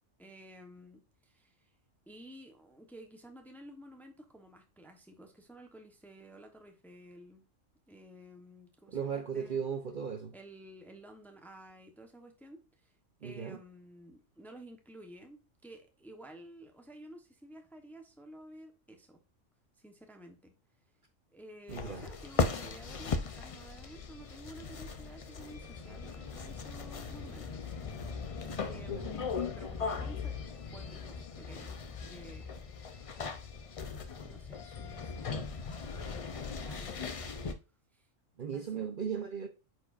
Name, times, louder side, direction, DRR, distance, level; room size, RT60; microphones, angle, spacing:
voice 1, 0.2-1.7 2.1-7.4 7.9-9.6 10.3-19.2 19.8-20.5 21.3-27.7 28.6-30.3 30.7-32.7 34.2-35.5 36.0-37.2 37.9-38.1 38.5-38.9, right 1 dB, ahead, 0.8 m, -53 dB
voice 2, 8.9-10.3 13.2-13.6 21.7-22.1 28.8-29.1 38.4-39.5, right 7 dB, 50° right, 0.8 m, -37 dB
sound 1, 21.7-37.5, left 5 dB, 50° left, 0.4 m, -38 dB
8.5 x 4.7 x 2.5 m
omnidirectional pair, 1.3 m